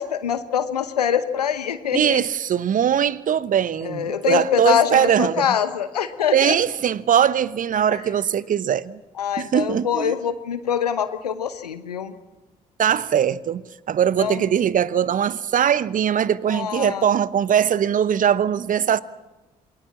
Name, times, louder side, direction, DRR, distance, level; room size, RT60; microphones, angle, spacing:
voice 1, 0.0-2.2 3.8-6.6 7.9-8.0 9.2-12.1 14.2-14.4 16.5-17.1, left 8 dB, 80° left, 1.0 m, -24 dB
voice 2, 1.9-5.6 6.3-9.0 9.4-10.2 12.8-19.0, right 9 dB, 40° right, 0.9 m, -21 dB
27.5 x 22.0 x 7.3 m
figure-of-eight pair, 45°, 20 cm